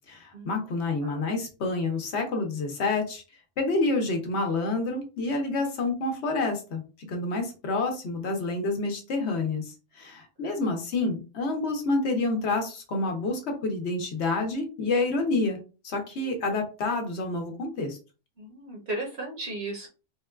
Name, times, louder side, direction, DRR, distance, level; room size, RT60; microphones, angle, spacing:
voice 1, 0.1-3.2 3.6-6.8 7.1-15.6 15.8-18.0, left 3 dB, 65° left, 4 dB, 1.0 m, -28 dB
voice 2, 10.4-10.8 18.4-19.9, right 2 dB, 60° right, -1 dB, 1.1 m, -36 dB
3.6 x 2.2 x 2.2 m, 0.32 s
omnidirectional pair, 1.3 m